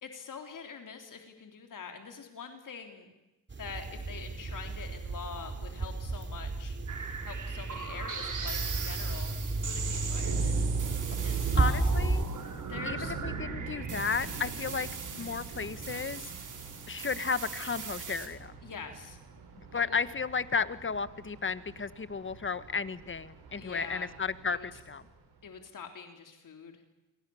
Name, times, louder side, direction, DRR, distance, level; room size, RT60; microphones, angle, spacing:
voice 1, 0.0-3.1 3.6-6.8 7.2-9.4 9.6-10.5 11.2-11.8 12.6-13.2 18.6-19.2 19.7-20.0 23.5-24.1 24.5-24.7 25.4-26.8, left 6 dB, 55° left, 5 dB, 3.7 m, -44 dB
sound 1, 3.5-12.2, right 3 dB, 30° right, 2.9 m, -32 dB
sound 2, 6.9-18.3, right 5 dB, 55° right, 5.7 m, -40 dB
Thunder, 9.5-25.5, right 4 dB, 80° right, 7.7 m, -43 dB
voice 2, 11.6-12.2 12.9-14.9 15.2-16.3 16.9-18.5 19.7-25.0, left 5 dB, 30° left, 14 dB, 1.6 m, -33 dB
28.5 x 24.0 x 7.2 m, 0.98 s
cardioid pair, 75°, 37 cm